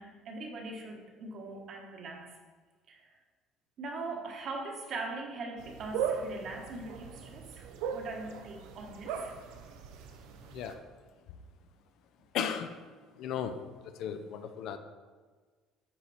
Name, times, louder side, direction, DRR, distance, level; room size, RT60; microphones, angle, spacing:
voice 1, 0.0-2.4 2.9-3.2 3.8-9.4, right 3 dB, 45° right, 1 dB, 1.3 m, -41 dB
sound 1, 5.6-10.7, right 7 dB, 85° right, 0.7 m, -38 dB
voice 2, 12.3-12.7 13.2-13.6 13.8-14.8, left 8 dB, 60° left, 8 dB, 0.6 m, -35 dB
9.9 x 4.4 x 4.3 m, 1.4 s
cardioid pair, 155°, 0 cm